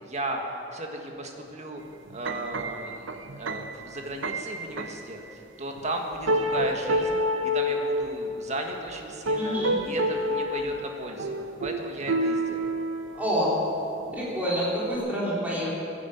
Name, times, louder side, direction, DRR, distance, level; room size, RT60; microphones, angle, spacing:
voice 1, 0.0-1.8 2.1-9.6 9.8-12.7, right 1 dB, 40° right, 2 dB, 1.7 m, -35 dB
sound 1, 2.1-5.1 5.8-5.9 6.3-8.1 9.1-10.7 11.2-13.6 14.0-14.4 14.9-15.0, equal, 90° right, 0.8 m, -28 dB
voice 2, 9.3-9.8 13.2-13.5 14.1-15.7, equal, 10° right, -8 dB, 3.9 m, -27 dB
15.5 x 10.0 x 8.1 m, 2.8 s
head